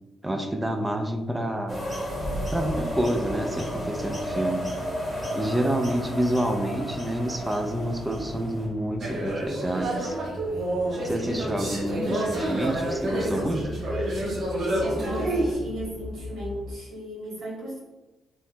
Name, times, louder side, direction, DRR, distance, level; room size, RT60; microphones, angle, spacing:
voice 1, 0.2-1.8 2.5-4.7 5.3-10.2 11.0-13.7, right 1 dB, 10° right, 4 dB, 0.4 m, -28 dB
sound 1, 1.7-8.7, equal, 5° left, 1.0 m, -32 dB
sound 2, 7.6-16.8, left 1 dB, 60° left, 0.3 m, -40 dB
sound 3, 9.0-15.5, right 1 dB, 60° right, 0.8 m, -28 dB
voice 2, 15.0-17.8, right 1 dB, 75° right, -5 dB, 1.1 m, -36 dB
3.1 x 2.1 x 2.7 m, 1.1 s
cardioid pair, 95°, 0 cm